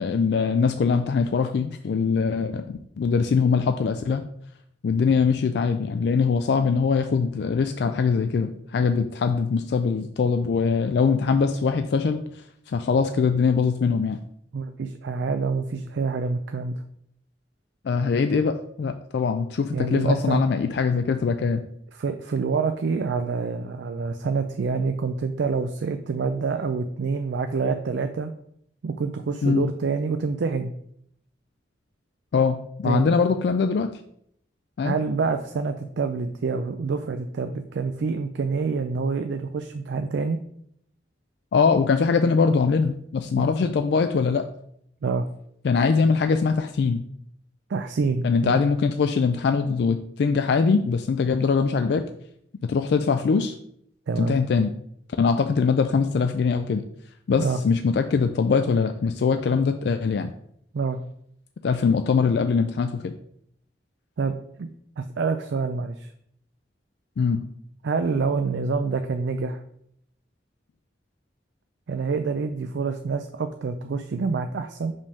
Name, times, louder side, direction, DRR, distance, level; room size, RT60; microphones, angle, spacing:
voice 1, 0.0-2.6 3.0-4.2 4.8-12.2 12.7-14.2 17.8-21.6 29.4-29.7 32.3-33.9 34.8-35.0 41.5-44.4 45.6-47.0 48.2-52.0 52.6-53.5 54.2-54.7 55.2-56.8 57.3-60.3 61.6-63.1 67.2-67.4, left 5 dB, 65° left, 8 dB, 0.3 m, -22 dB
voice 2, 14.5-16.8 19.7-20.4 21.9-28.3 28.8-30.7 32.8-33.1 34.8-40.4 43.3-43.5 45.0-45.3 47.7-48.6 54.1-54.4 57.4-57.6 60.7-61.0 64.2-64.7 65.0-66.1 67.8-69.6 71.9-75.0, right 4 dB, 75° right, 7 dB, 0.4 m, -27 dB
5.3 x 3.5 x 5.3 m, 0.70 s
head